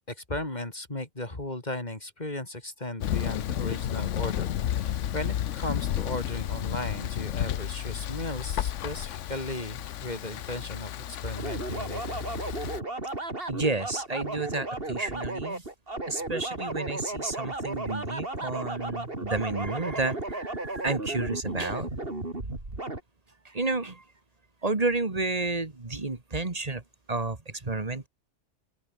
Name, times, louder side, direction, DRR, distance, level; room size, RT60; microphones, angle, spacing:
voice 1, 0.1-4.5 4.8-10.9 11.2-12.2, left 1 dB, 35° left, 3.6 m, -36 dB
Thunder, 3.0-12.8, left 11 dB, 85° left, 1.1 m, -32 dB
sound 1, 11.4-23.0, right 2 dB, 50° right, 4.4 m, -34 dB
voice 2, 13.5-15.6 16.1-21.9 23.5-24.0 24.6-26.8 27.1-28.1, right 3 dB, 30° right, 2.0 m, -31 dB
open air
omnidirectional pair, 1.2 m